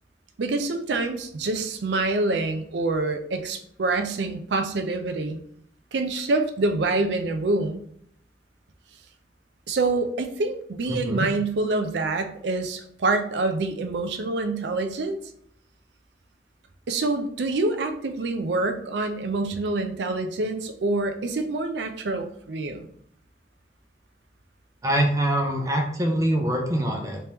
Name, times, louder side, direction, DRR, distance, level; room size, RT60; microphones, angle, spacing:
voice 1, 0.4-5.4 5.9-7.8 9.7-15.2 16.9-22.9, right 2 dB, 85° right, 7 dB, 0.5 m, -26 dB
voice 2, 10.9-11.3 24.8-27.2, right 1 dB, 20° right, 2 dB, 0.5 m, -24 dB
3.3 x 3.0 x 2.9 m, 0.67 s
head